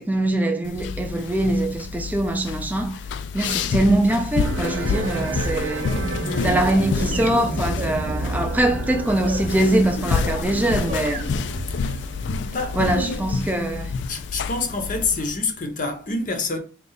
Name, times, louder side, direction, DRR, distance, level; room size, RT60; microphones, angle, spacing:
voice 1, 0.0-3.0 3.3-5.9 6.4-11.3 12.7-13.9, right 1 dB, 10° right, 0.4 m, -23 dB
sound 1, 0.6-15.4, left 5 dB, 65° left, 0.3 m, -29 dB
sound 2, 4.4-14.1, right 2 dB, 85° right, 0.6 m, -32 dB
sound 3, 4.9-10.6 10.9-12.7, right 1 dB, 35° right, 0.9 m, -34 dB
voice 2, 6.2-6.7 11.7-12.0 12.4-13.3 14.1-16.6, left 3 dB, 40° left, 0.7 m, -27 dB
3.8 x 2.3 x 3.8 m
head